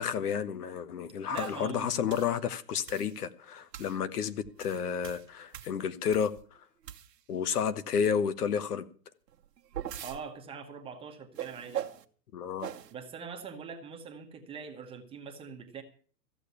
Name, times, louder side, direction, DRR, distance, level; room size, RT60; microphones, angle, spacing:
voice 1, 0.0-6.3 7.3-8.9 12.3-12.7, left 7 dB, 65° left, 14 dB, 1.2 m, -31 dB
voice 2, 1.3-1.9 10.0-11.9 12.9-15.8, right 6 dB, 10° right, 3 dB, 1.1 m, -43 dB
sound 1, 1.4-1.6 2.1-2.4 2.9-3.2 3.7-4.0 4.4-6.4 6.8-7.4 9.3-10.2 11.4-12.0 12.6-12.9, right 10 dB, 75° right, 1.3 m, -41 dB
14.5 x 7.0 x 8.2 m, 0.43 s
hypercardioid pair, 145°, 49 cm